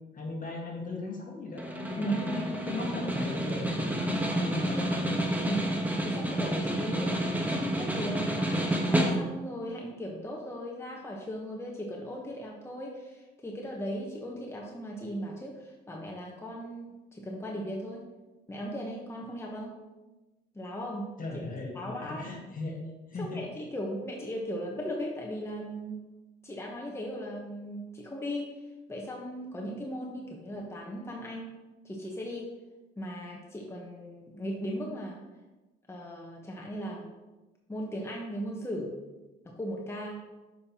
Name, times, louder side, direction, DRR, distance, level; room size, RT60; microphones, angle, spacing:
voice 1, 0.1-5.1 21.2-22.8 23.1-23.4, left 2 dB, 45° left, 0 dB, 1.5 m, -37 dB
Snare drum, 1.6-9.5, right 1 dB, 10° right, 1.0 m, -29 dB
voice 2, 5.4-18.1 18.5-19.8 20.5-21.1 21.7-22.3 23.2-26.1 26.4-28.5 28.9-31.6 31.8-32.5 33.0-35.2 35.9-37.1 37.7-38.9 39.4-40.2, equal, 15° left, -2 dB, 1.0 m, -37 dB
6.6 x 5.3 x 2.9 m, 1.1 s
cardioid pair, 90°, 20 cm